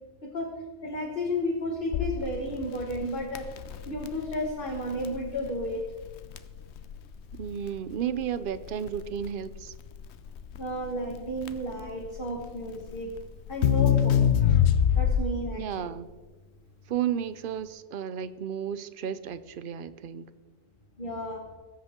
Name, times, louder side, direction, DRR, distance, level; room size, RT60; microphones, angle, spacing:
voice 1, 0.2-0.5 0.8-3.5 3.9-5.8 10.6-13.1 13.5-14.3 14.9-15.9 21.0-21.4, equal, 50° left, 1.6 m, -32 dB
Crackle, 1.9-15.5, left 9 dB, 75° left, 0.9 m, -27 dB
voice 2, 7.3-9.7 15.5-16.1 16.9-20.3, right 9 dB, 60° right, 0.7 m, -33 dB
19.5 x 8.0 x 3.7 m
omnidirectional pair, 1.2 m